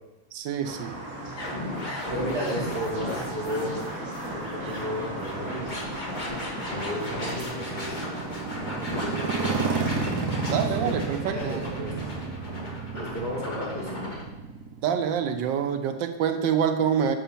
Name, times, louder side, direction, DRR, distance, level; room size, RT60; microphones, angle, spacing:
voice 1, 0.3-1.0 10.5-11.8 14.8-17.2, right 8 dB, 90° right, 6 dB, 1.4 m, -26 dB
sound 1, 0.6-7.5, right 1 dB, 45° right, 2.0 m, -37 dB
sound 2, 1.4-14.2, left 1 dB, 30° left, 1.3 m, -35 dB
voice 2, 2.1-3.8 4.2-5.7 6.7-8.0 9.0-9.8 10.4-11.9 12.9-14.0, equal, 15° right, -7 dB, 2.6 m, -33 dB
Motorcycle, 5.5-15.3, right 5 dB, 65° right, 1.4 m, -32 dB
7.2 x 5.1 x 5.6 m, 0.96 s
omnidirectional pair, 2.0 m